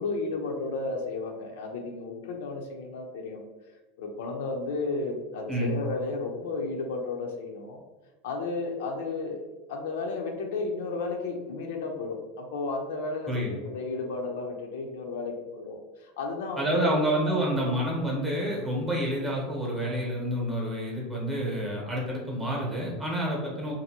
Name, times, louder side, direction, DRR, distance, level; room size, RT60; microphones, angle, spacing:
voice 1, 0.0-3.4 4.0-7.8 8.2-9.4 9.7-17.7 18.1-18.2 23.6-23.7, left 3 dB, 75° left, 2 dB, 0.5 m, -33 dB
voice 2, 16.6-23.7, right 1 dB, 10° right, -3 dB, 0.8 m, -28 dB
2.7 x 2.5 x 2.8 m, 1.2 s
supercardioid pair, 155°, 0 cm